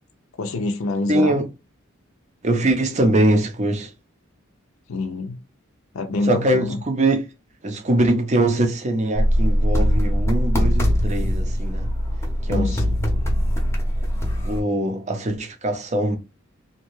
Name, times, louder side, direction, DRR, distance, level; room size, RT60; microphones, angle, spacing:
voice 1, 0.4-1.4 4.9-5.4 5.9-6.8 12.4-13.0, left 2 dB, 80° left, 0.5 m, -26 dB
voice 2, 1.1-1.5 2.4-3.9 6.3-7.3 7.6-11.9 12.4-12.7 14.4-16.2, right 1 dB, 35° right, 0.6 m, -22 dB
sound 1, 9.1-14.6, equal, 15° left, 0.7 m, -21 dB
2.7 x 2.2 x 3.0 m
head